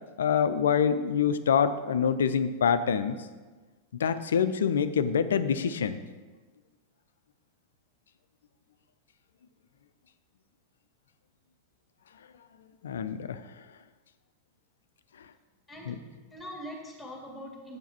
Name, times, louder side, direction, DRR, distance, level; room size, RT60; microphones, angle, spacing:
voice 1, 0.2-3.2 4.0-6.0 12.8-13.4 15.9-16.0, left 7 dB, 65° left, 12 dB, 0.4 m, -26 dB
voice 2, 15.7-17.8, equal, 5° left, -1 dB, 2.0 m, -43 dB
8.0 x 4.7 x 5.9 m, 1.3 s
figure-of-eight pair, 90°, 0 cm